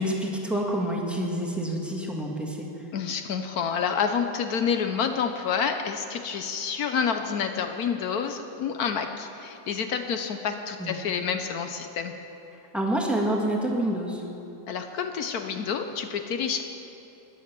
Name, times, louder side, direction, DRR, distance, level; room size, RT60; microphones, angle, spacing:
voice 1, 0.0-2.7 10.8-10.9 12.7-14.2, right 1 dB, ahead, -2 dB, 1.2 m, -27 dB
voice 2, 2.9-12.1 14.7-16.6, left 6 dB, 65° left, 7 dB, 1.0 m, -28 dB
14.0 x 10.0 x 6.0 m, 3.0 s
omnidirectional pair, 2.0 m